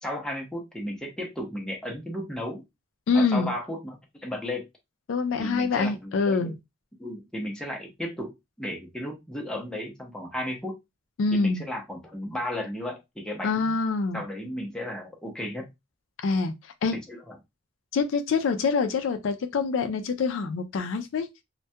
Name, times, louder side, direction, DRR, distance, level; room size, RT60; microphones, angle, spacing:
voice 1, 0.0-2.6 3.1-4.7 5.4-6.5 7.0-10.8 11.3-13.8 14.1-15.7 16.9-17.4, left 1 dB, 5° left, 0.6 m, -34 dB
voice 2, 3.1-3.5 5.1-6.5 11.2-11.6 13.4-14.2 16.2-16.5 16.8-17.0 17.9-21.3, left 4 dB, 70° left, 0.3 m, -25 dB
2.2 x 2.2 x 2.6 m
head